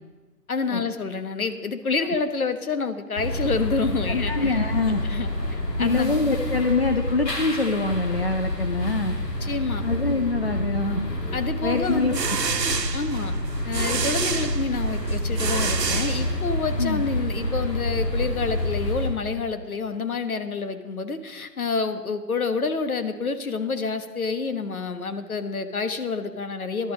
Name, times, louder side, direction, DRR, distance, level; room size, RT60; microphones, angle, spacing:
voice 1, 0.5-4.6 5.1-6.1 9.4-9.8 11.3-12.2 12.9-13.3 13.6-26.9, left 4 dB, 60° left, 9 dB, 1.3 m, -28 dB
sound 1, 3.2-19.1, left 1 dB, 85° left, 3.1 m, -28 dB
voice 2, 4.3-5.0 5.8-9.2 9.8-11.0 11.6-12.1 16.8-17.0, left 3 dB, 40° left, 6 dB, 0.6 m, -24 dB
sound 2, 11.8-16.7, right 5 dB, 80° right, 1.2 m, -29 dB
13.0 x 11.5 x 5.0 m, 1.3 s
figure-of-eight pair, 170°, 49 cm